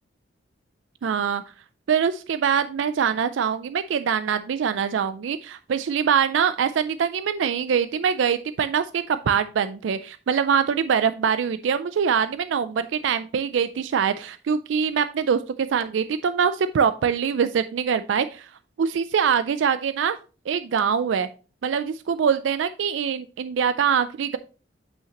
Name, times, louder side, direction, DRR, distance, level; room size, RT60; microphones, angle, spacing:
voice 1, 1.0-1.4 1.9-18.5 18.8-20.2 20.5-21.3 21.6-24.4, right 7 dB, 80° right, 12 dB, 0.4 m, -23 dB
8.3 x 5.7 x 2.9 m, 0.36 s
head